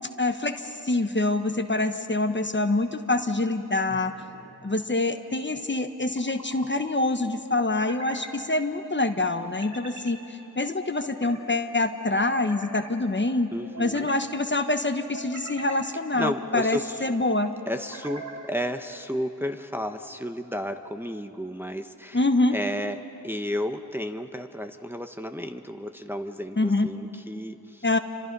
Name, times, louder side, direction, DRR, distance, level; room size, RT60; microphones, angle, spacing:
voice 1, 0.2-4.1 4.6-10.2 10.6-13.5 13.8-17.5 22.1-22.5 26.6-26.9 27.8-28.0, left 2 dB, 30° left, 8 dB, 1.1 m, -25 dB
sound 1, 3.9-4.6 5.9-6.7 7.5-8.4 9.4-10.2 10.8-11.4 12.1-12.9 13.6-14.2 14.9-15.9 16.4-16.9 17.7-18.5, right 2 dB, 50° right, 3.4 m, -43 dB
voice 2, 13.5-14.1 16.1-17.1 17.7-22.2 22.5-27.9, equal, 5° right, 5 dB, 1.1 m, -32 dB
29.5 x 26.0 x 5.5 m, 2.9 s
cardioid pair, 50°, 37 cm